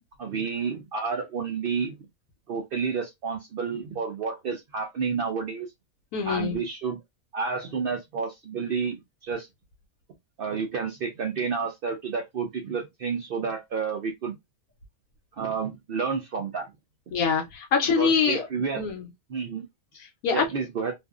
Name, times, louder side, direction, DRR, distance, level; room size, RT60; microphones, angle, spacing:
voice 1, 0.2-2.0 2.5-5.7 6.2-7.0 7.3-9.5 10.4-14.4 15.3-16.7 18.0-18.8 19.3-19.7 20.3-20.9, right 5 dB, 75° right, 0.5 m, -30 dB
voice 2, 6.1-6.6 17.1-18.5 18.8-19.1 20.0-20.5, left 6 dB, 75° left, 1.0 m, -24 dB
2.6 x 2.4 x 2.3 m
omnidirectional pair, 1.5 m